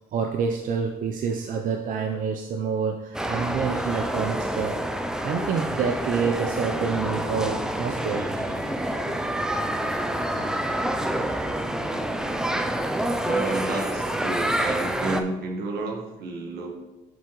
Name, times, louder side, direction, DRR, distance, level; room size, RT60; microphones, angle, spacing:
voice 1, 0.1-4.7 5.2-8.6, right 6 dB, 55° right, 3 dB, 0.6 m, -27 dB
sound 1, 3.1-15.2, right 1 dB, 5° right, 0.4 m, -27 dB
sound 2, 6.7-13.4, left 1 dB, 40° left, 1.4 m, -41 dB
voice 2, 13.2-16.7, right 2 dB, 75° right, 1 dB, 1.3 m, -31 dB
7.9 x 4.7 x 3.1 m, 1.0 s
cardioid pair, 110°, 17 cm